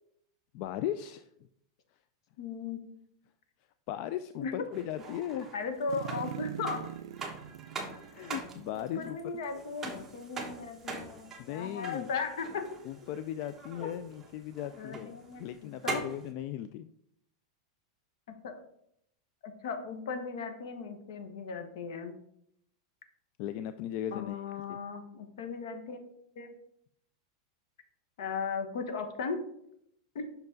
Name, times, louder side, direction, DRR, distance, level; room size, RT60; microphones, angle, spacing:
voice 1, 0.5-1.3 3.9-5.5 8.1-9.3 11.4-12.1 12.9-16.9 23.4-24.4 24.7-24.8, left 11 dB, 45° left, 11 dB, 0.3 m, -37 dB
voice 2, 2.4-2.8 4.4-4.5 5.3-6.9 8.9-12.7 13.8-13.9 14.7-16.0 18.4-18.6 19.4-22.2 24.1-26.0 26.3-26.5 28.2-29.4 30.1-30.3, left 5 dB, 75° left, 7 dB, 1.2 m, -37 dB
sound 1, 4.7-16.3, right 3 dB, 15° right, 1.3 m, -43 dB
sound 2, 5.9-9.3 9.6-9.7, right 10 dB, 80° right, 0.3 m, -42 dB
5.8 x 5.4 x 3.9 m, 0.73 s
supercardioid pair, 145°, 3 cm